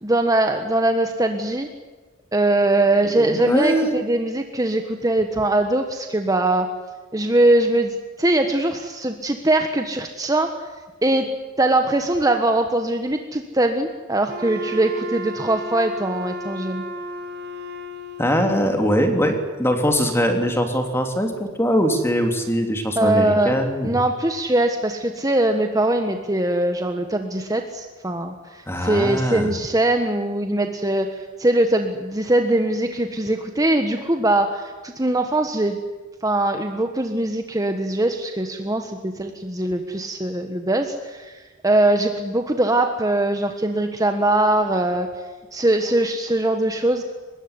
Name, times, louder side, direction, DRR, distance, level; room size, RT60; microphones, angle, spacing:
voice 1, 0.0-1.7 2.3-6.7 7.1-10.5 11.0-11.3 11.6-16.8 23.0-23.6 23.8-35.8 36.2-45.1 45.5-47.0, right 1 dB, 15° right, 5 dB, 1.4 m, -21 dB
voice 2, 3.1-3.9 18.2-23.9 28.7-29.5, equal, 10° left, 5 dB, 3.2 m, -21 dB
Wind instrument woodwind instrument, 14.3-18.6, equal, 50° right, 2.6 m, -33 dB
24.0 x 21.0 x 9.8 m, 1.3 s
head